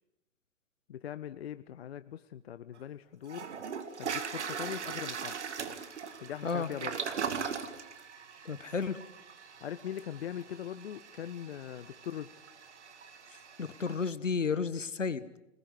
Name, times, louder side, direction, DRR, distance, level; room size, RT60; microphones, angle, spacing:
voice 1, 0.9-3.5 4.0-5.4 6.2-7.0 9.6-12.3, left 10 dB, 55° left, 12 dB, 1.0 m, -41 dB
Toilet flush, 2.8-2.9 3.3-14.1, right 6 dB, 65° right, 2.3 m, -40 dB
voice 2, 8.4-9.0 13.6-15.4, left 5 dB, 75° left, 14 dB, 1.6 m, -32 dB
27.5 x 20.0 x 9.6 m, 0.96 s
figure-of-eight pair, 110°, 38 cm